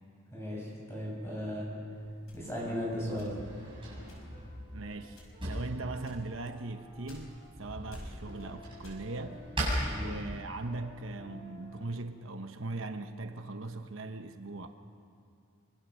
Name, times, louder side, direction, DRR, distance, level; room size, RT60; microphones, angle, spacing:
voice 1, 0.3-1.7 2.3-3.3 9.9-10.1, equal, 15° left, -3 dB, 7.0 m, -36 dB
Drawer open or close, 1.9-10.7, right 1 dB, 25° right, 7.3 m, -40 dB
sound 1, 2.3-3.7 4.1-4.5 5.1-5.6 6.0-7.6 7.9-8.5 8.8-10.1, left 1 dB, 80° left, 5.8 m, -52 dB
sound 2, 3.4-11.8, equal, 45° left, 6.9 m, -55 dB
voice 2, 4.7-9.5 10.0-14.7, right 2 dB, 65° right, 7 dB, 1.0 m, -39 dB
25.0 x 23.5 x 6.4 m, 2.5 s
head